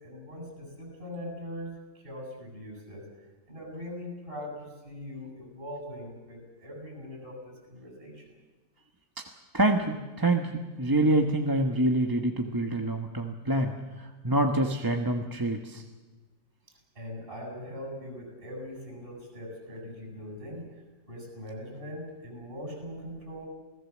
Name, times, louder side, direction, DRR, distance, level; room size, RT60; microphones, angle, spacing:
voice 1, 0.0-3.1 3.5-8.3 16.9-20.8 21.1-23.5, equal, 45° right, 2 dB, 8.3 m, -41 dB
voice 2, 9.5-15.8, right 1 dB, 15° right, 4 dB, 1.2 m, -26 dB
28.5 x 18.0 x 7.4 m, 1.2 s
omnidirectional pair, 1.4 m